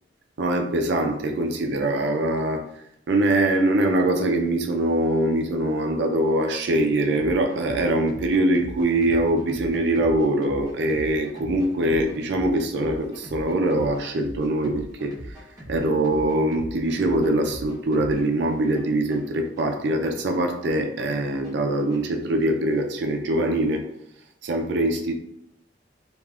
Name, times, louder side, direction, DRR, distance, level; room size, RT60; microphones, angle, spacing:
voice 1, 0.4-2.7 3.1-15.4 15.7-23.8 24.4-25.2, right 1 dB, 65° right, 3 dB, 0.4 m, -23 dB
sound 1, 7.1-22.1, right 1 dB, 20° right, 0.7 m, -42 dB
3.4 x 2.4 x 2.3 m, 0.75 s
head